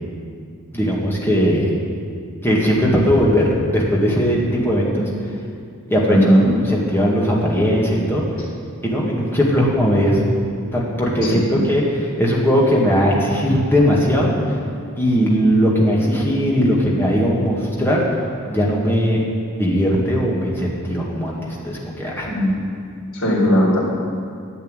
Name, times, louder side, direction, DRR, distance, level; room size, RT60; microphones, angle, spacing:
voice 1, 0.7-1.7 2.4-5.1 5.9-6.2 6.6-8.2 8.8-10.2 10.7-14.6 15.0-19.2 19.6-22.3, equal, 10° left, -4 dB, 2.0 m, -18 dB
voice 2, 6.1-6.5 11.2-11.4 22.3-22.5 23.1-23.8, equal, 60° left, -5 dB, 4.0 m, -16 dB
11.0 x 7.5 x 9.0 m, 2.3 s
head